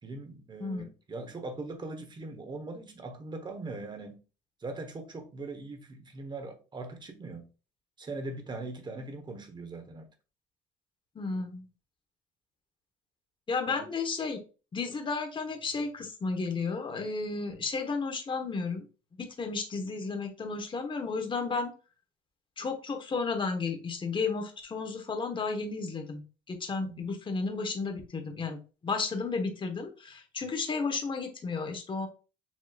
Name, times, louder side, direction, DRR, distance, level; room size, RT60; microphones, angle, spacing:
voice 1, 0.0-4.2 4.6-7.5 8.0-10.1 13.7-13.9 26.7-27.0, right 3 dB, 25° right, 1.2 m, -41 dB
voice 2, 11.1-11.6 13.5-14.4 14.7-18.8 19.1-21.7 22.6-32.1, left 4 dB, 30° left, 1.2 m, -33 dB
7.3 x 3.0 x 2.4 m
cardioid pair, 110°, 17 cm